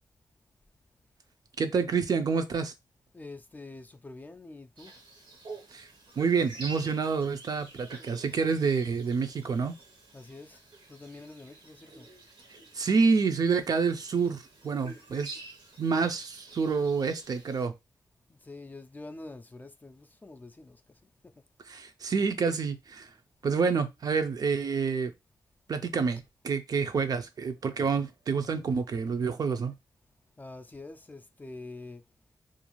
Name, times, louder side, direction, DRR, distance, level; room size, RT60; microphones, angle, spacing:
voice 1, 1.6-2.7 5.7-5.9 6.2-9.7 12.7-15.4 15.8-17.7 21.7-23.1 23.4-25.1 25.7-29.7, right 5 dB, 60° right, 0.4 m, -28 dB
voice 2, 3.1-4.9 10.1-10.6 10.9-12.1 18.5-20.8 30.4-32.0, left 2 dB, 25° left, 0.3 m, -45 dB
sound 1, 4.8-17.7, right 3 dB, 85° right, 0.9 m, -49 dB
2.5 x 2.3 x 3.0 m
cardioid pair, 70°, 8 cm